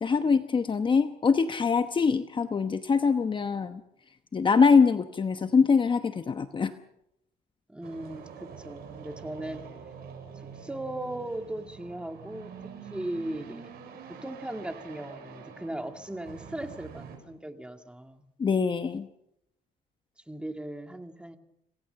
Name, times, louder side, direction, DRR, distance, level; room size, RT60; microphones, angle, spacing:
voice 1, 0.0-3.8 4.3-6.7 18.4-19.1, left 5 dB, 30° left, 9 dB, 1.0 m, -23 dB
voice 2, 7.7-9.7 10.3-18.2 20.3-21.4, right 1 dB, 5° right, 6 dB, 2.1 m, -38 dB
sound 1, 7.8-17.2, right 6 dB, 65° right, 6.9 m, -46 dB
27.0 x 18.5 x 6.9 m, 0.83 s
cardioid pair, 110°, 17 cm